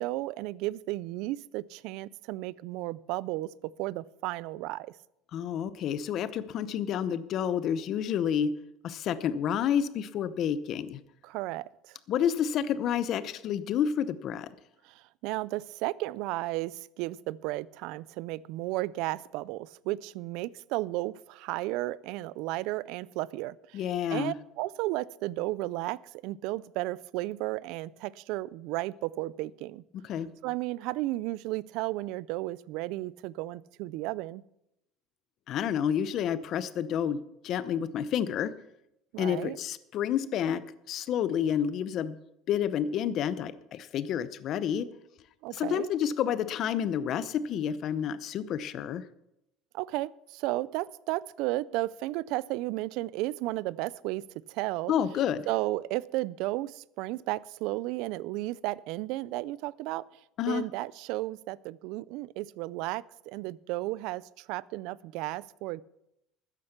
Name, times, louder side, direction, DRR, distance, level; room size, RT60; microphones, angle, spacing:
voice 1, 0.0-4.9 11.2-12.0 14.8-23.8 24.1-29.8 30.4-34.4 39.1-39.6 45.4-45.9 49.7-54.2 54.5-54.9 55.5-60.0 60.5-65.8, right 18 dB, 70° right, 22 dB, 0.4 m, -34 dB
voice 2, 5.3-8.5 8.8-11.0 12.1-14.5 23.7-24.3 29.9-30.3 35.5-38.5 39.2-42.2 42.5-44.9 45.5-49.0 54.9-55.5 60.4-60.6, left 9 dB, 45° left, 15 dB, 0.7 m, -29 dB
13.0 x 9.8 x 5.9 m, 0.82 s
cardioid pair, 150°, 0 cm